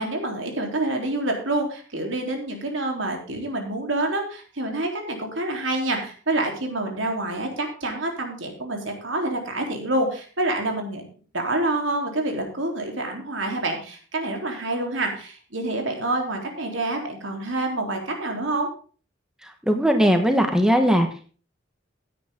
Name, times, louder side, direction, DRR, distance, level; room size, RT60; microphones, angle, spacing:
voice 1, 0.0-11.0 11.3-18.7, right 2 dB, 75° right, 2 dB, 3.7 m, -27 dB
voice 2, 19.4-21.1, equal, 5° right, 5 dB, 1.4 m, -19 dB
16.0 x 9.4 x 3.7 m, 0.38 s
head